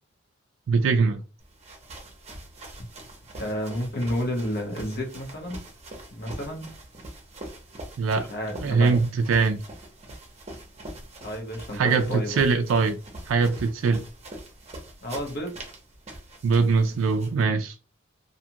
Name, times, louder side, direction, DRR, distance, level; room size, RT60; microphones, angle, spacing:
voice 1, 0.7-1.2 8.0-8.3 8.6-9.6 11.7-13.0 13.3-14.1 16.4-17.7, right 4 dB, 70° right, 0.3 m, -22 dB
sound 1, 1.4-17.4, right 1 dB, 30° right, 0.8 m, -43 dB
voice 2, 3.3-5.6 6.1-6.7 8.3-9.0 11.2-12.4 15.0-15.6, equal, 50° left, 0.9 m, -31 dB
2.5 x 2.3 x 2.8 m
head